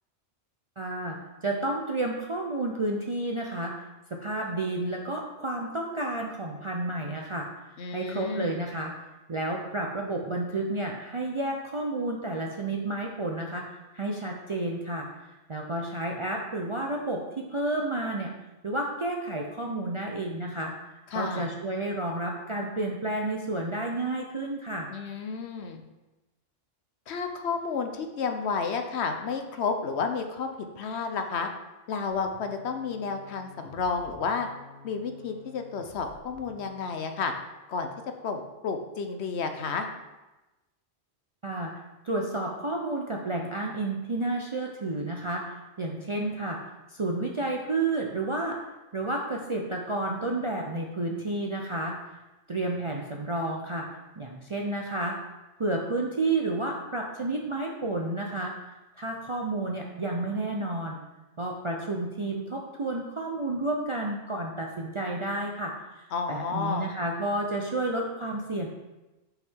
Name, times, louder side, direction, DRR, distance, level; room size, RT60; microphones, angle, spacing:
voice 1, 0.8-3.9 4.1-8.9 9.3-13.6 13.9-15.1 15.5-18.3 18.6-20.7 21.1-24.9 41.4-46.6 46.9-48.6 48.9-52.0 52.5-53.9 54.2-55.2 55.6-58.5 59.0-61.0 61.4-68.7, right 2 dB, 40° right, 0 dB, 0.5 m, -31 dB
voice 2, 7.8-8.6 21.1-21.5 24.9-25.8 27.1-30.5 30.8-31.5 31.9-34.5 34.8-37.3 37.7-37.9 38.2-39.9 66.1-66.9, left 5 dB, 70° left, 6 dB, 0.9 m, -31 dB
sound 1, 32.1-37.0, left 2 dB, 55° right, 1.2 m, -51 dB
5.7 x 5.5 x 4.5 m, 1.1 s
omnidirectional pair, 1.2 m